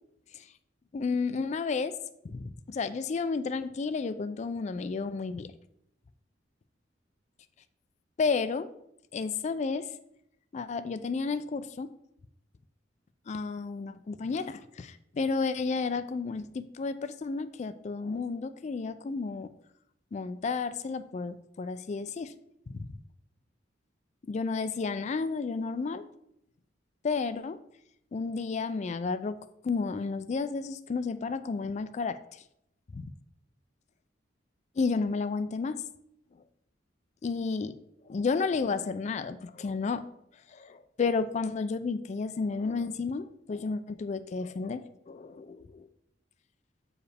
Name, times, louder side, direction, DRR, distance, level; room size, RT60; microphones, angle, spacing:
voice 1, 0.9-1.9 2.2-5.5 8.2-8.7 9.1-9.9 10.5-11.9 13.3-19.5 20.1-22.3 22.7-22.9 24.3-26.0 27.0-27.6 28.1-29.4 29.6-32.2 34.8-35.8 37.2-37.8 38.1-40.1 40.5-45.6, left 4 dB, 40° left, 11 dB, 0.3 m, -32 dB
8.1 x 4.8 x 3.4 m, 0.75 s
head